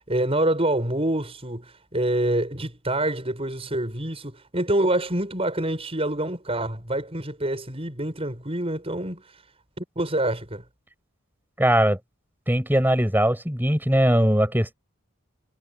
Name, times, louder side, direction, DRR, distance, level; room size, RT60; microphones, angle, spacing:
voice 1, 0.1-9.2 9.8-10.6, right 1 dB, 25° right, 7.1 m, -26 dB
voice 2, 11.6-12.0 12.5-14.7, right 1 dB, 10° right, 7.1 m, -20 dB
head